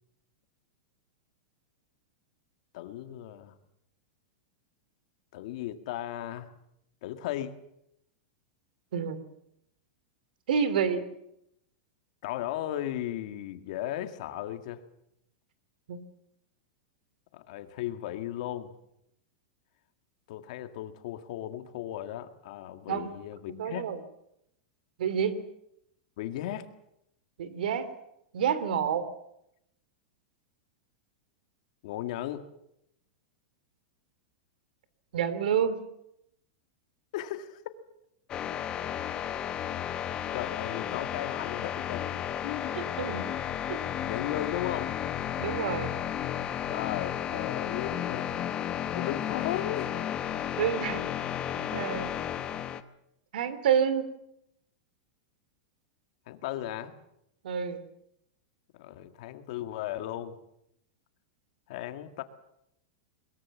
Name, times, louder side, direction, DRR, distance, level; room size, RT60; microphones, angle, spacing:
voice 1, 2.7-3.5 5.3-6.5 7.0-7.6 12.2-14.8 17.3-18.8 20.3-23.9 26.2-26.7 31.8-32.5 37.1-37.6 40.3-42.8 44.1-44.9 46.7-49.9 56.3-56.9 58.7-60.4 61.7-62.2, left 12 dB, 50° left, 9 dB, 1.9 m, -36 dB
voice 2, 10.5-11.1 15.9-16.0 22.9-23.1 23.5-24.0 25.0-25.4 27.4-27.9 28.3-29.0 35.1-35.8 42.8-43.3 43.7-43.8 45.4-45.9 50.6-51.0 51.7-52.1 53.3-54.1 57.4-57.8, right 7 dB, 80° right, 14 dB, 2.8 m, -28 dB
sound 1, 38.3-52.8, left 10 dB, 20° left, 0.9 m, -33 dB
22.0 x 22.0 x 7.2 m, 0.78 s
supercardioid pair, 175°, 5 cm